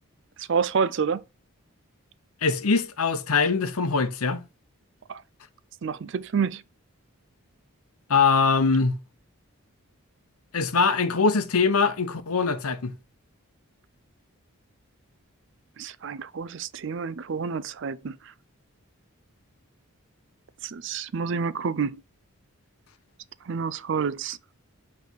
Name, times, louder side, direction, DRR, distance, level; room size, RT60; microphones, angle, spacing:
voice 1, 0.4-1.2 5.1-5.2 5.8-6.6 15.8-18.2 20.6-22.0 23.4-24.4, right 6 dB, 55° right, 0.4 m, -28 dB
voice 2, 2.4-4.4 8.1-8.9 10.5-12.9, left 4 dB, 90° left, 0.8 m, -22 dB
8.1 x 3.3 x 4.5 m
head